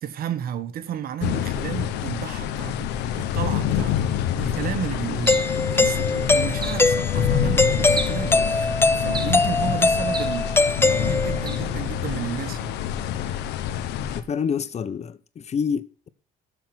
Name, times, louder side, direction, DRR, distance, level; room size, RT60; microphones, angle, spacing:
voice 1, 0.0-5.4 5.7-8.7 8.9-12.8, right 9 dB, 60° right, 1.5 m, -32 dB
sound 1, 1.2-14.2, left 9 dB, 90° left, 1.2 m, -27 dB
Doorbell, 5.3-11.6, left 3 dB, 15° left, 0.6 m, -22 dB
sound 2, 5.3-5.6 6.6-6.9 7.9-8.3 9.1-9.5 10.1-10.4 11.5-11.7, right 4 dB, 25° right, 1.3 m, -33 dB
voice 2, 14.1-16.1, left 6 dB, 40° left, 1.0 m, -28 dB
12.5 x 7.2 x 6.0 m
cardioid pair, 110°, 17 cm